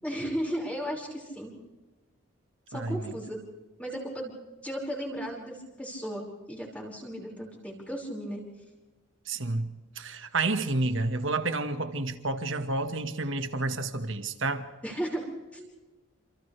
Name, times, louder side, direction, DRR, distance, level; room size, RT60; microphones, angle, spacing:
voice 1, 0.0-1.5 2.7-3.4 3.8-4.3 4.6-8.4 14.8-15.7, equal, 5° left, -2 dB, 5.6 m, -35 dB
voice 2, 2.7-3.0 9.3-9.7 10.0-14.7, right 2 dB, 60° right, 8 dB, 1.7 m, -30 dB
29.5 x 27.5 x 3.4 m, 1.1 s
head